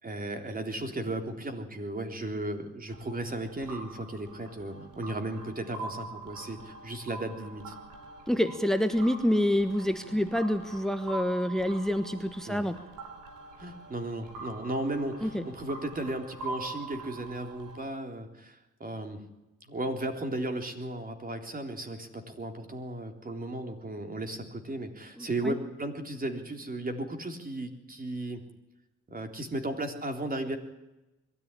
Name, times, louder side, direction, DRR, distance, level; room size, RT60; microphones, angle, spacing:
voice 1, 0.0-7.7 12.5-12.7 13.6-19.2 19.6-28.4 29.1-30.6, right 1 dB, 30° right, 5 dB, 3.6 m, -35 dB
sound 1, 2.9-17.8, right 2 dB, 80° right, 4.4 m, -44 dB
voice 2, 8.3-12.8 15.2-15.4 25.2-25.6, left 1 dB, ahead, 9 dB, 1.3 m, -27 dB
22.0 x 14.0 x 9.9 m, 0.99 s
cardioid pair, 90°, 30 cm